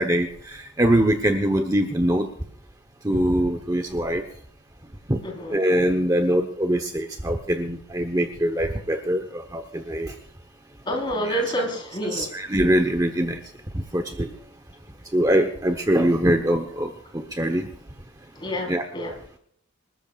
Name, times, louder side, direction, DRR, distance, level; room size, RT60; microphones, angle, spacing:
voice 1, 0.0-2.3 3.0-4.2 5.1-5.2 5.5-10.2 11.2-11.4 12.1-13.4 13.7-14.3 15.1-17.7 18.7-18.8, right 1 dB, 15° right, 5 dB, 1.0 m, -23 dB
voice 2, 5.2-5.6 10.8-12.3 18.4-19.1, equal, 20° left, 1 dB, 4.2 m, -28 dB
27.0 x 13.5 x 2.5 m, 0.63 s
head